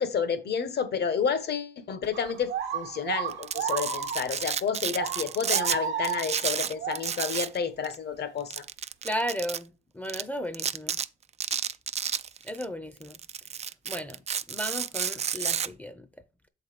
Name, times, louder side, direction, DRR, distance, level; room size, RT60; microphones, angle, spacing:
voice 1, 0.0-8.6, left 6 dB, 55° left, 1.2 m, -30 dB
sound 1, 2.1-4.6 4.9-7.1, right 7 dB, 70° right, 1.1 m, -33 dB
Domestic sounds home sounds, 3.3-5.8 6.0-7.6 7.8-8.0 8.5-9.6 10.1-10.2 10.5-11.1 11.4-12.6 13.0-15.7, right 7 dB, 35° right, 0.4 m, -31 dB
voice 2, 9.0-11.0 12.4-13.2 13.9-14.2 14.5-16.1, equal, 10° left, 0.7 m, -34 dB
7.5 x 4.1 x 5.0 m
cardioid pair, 90°, 20 cm